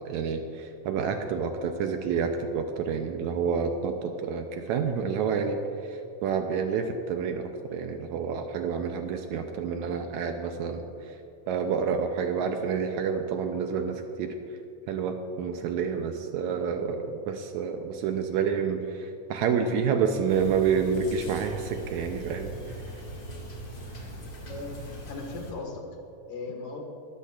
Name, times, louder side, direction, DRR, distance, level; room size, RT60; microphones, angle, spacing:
voice 1, 0.0-11.2 11.5-14.4 14.9-22.5, right 6 dB, 80° right, 5 dB, 1.8 m, -29 dB
sound 1, 20.3-25.5, right 1 dB, 40° left, 2.4 m, -41 dB
voice 2, 24.4-25.8 26.3-26.8, left 3 dB, 75° left, 1 dB, 3.3 m, -38 dB
20.5 x 14.0 x 2.4 m, 2.7 s
omnidirectional pair, 3.8 m